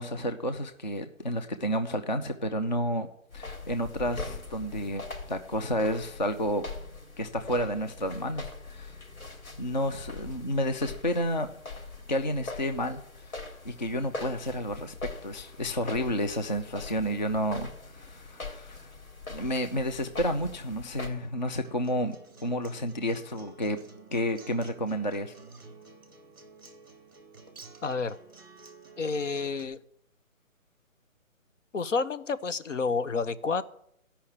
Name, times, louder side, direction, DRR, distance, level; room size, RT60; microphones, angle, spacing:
voice 1, 0.0-3.1 3.3-6.6 7.2-9.0 9.6-11.5 12.1-13.4 13.6-14.9 15.2-18.9 19.3-23.8 24.1-25.3, equal, 35° left, 8 dB, 0.6 m, -31 dB
sound 1, 3.3-21.1, left 3 dB, 90° left, 4.0 m, -42 dB
Acoustic guitar, 21.6-29.6, right 4 dB, 15° right, 0.7 m, -51 dB
voice 2, 27.8-28.2 29.0-29.8 31.7-33.6, left 4 dB, 65° left, 13 dB, 0.9 m, -29 dB
14.5 x 5.7 x 8.6 m, 0.73 s
hypercardioid pair, 175°, 40 cm